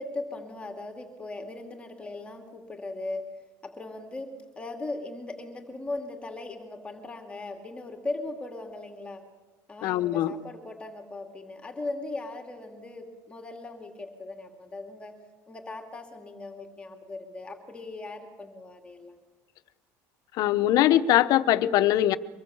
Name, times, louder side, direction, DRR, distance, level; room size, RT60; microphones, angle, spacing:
voice 1, 0.0-3.3 3.6-9.2 9.7-15.2 15.5-19.2, left 2 dB, 15° left, 2.4 m, -38 dB
voice 2, 9.8-10.3 20.3-22.2, left 13 dB, 60° left, 1.0 m, -22 dB
24.5 x 20.5 x 7.2 m
cardioid pair, 145°, 7 cm